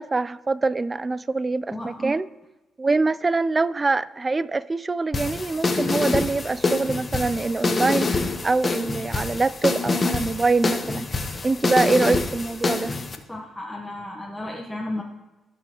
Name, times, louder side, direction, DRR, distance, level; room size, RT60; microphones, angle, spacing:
voice 1, 0.0-2.3 2.8-11.1 11.4-12.9, right 3 dB, 25° right, 0.3 m, -24 dB
voice 2, 1.7-2.1 13.3-15.0, left 1 dB, 5° left, 1.0 m, -33 dB
sound 1, 5.1-13.2, left 3 dB, 30° left, 0.9 m, -26 dB
16.5 x 6.1 x 2.9 m
cardioid pair, 90°, 0 cm